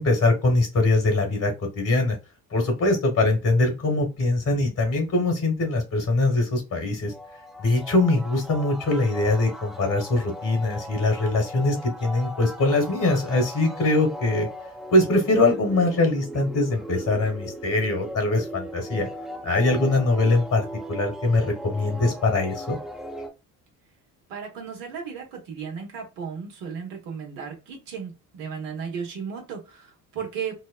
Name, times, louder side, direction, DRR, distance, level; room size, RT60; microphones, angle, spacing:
voice 1, 0.0-2.2 2.5-7.1 7.6-14.5 14.9-19.1 19.4-22.8, left 2 dB, 45° left, 4 dB, 1.5 m, -22 dB
sound 1, 4.1-4.8 5.1-6.4 6.8-6.9 7.1-23.3, equal, ahead, 0.7 m, -38 dB
voice 2, 24.3-30.5, right 6 dB, 80° right, 1 dB, 1.2 m, -35 dB
3.3 x 2.1 x 2.3 m, 0.28 s
hypercardioid pair, 55°, 44 cm